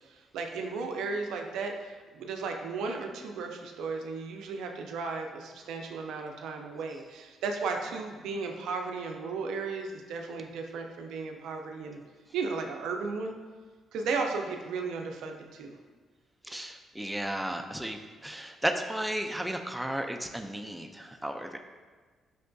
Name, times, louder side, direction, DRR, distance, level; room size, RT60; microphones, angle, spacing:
voice 1, 0.1-12.0 12.3-13.3 13.9-15.8, right 4 dB, 85° right, 3 dB, 0.3 m, -35 dB
voice 2, 16.4-21.6, right 1 dB, 5° right, 4 dB, 0.3 m, -34 dB
5.2 x 2.5 x 2.2 m, 1.4 s
cardioid pair, 90°, 0 cm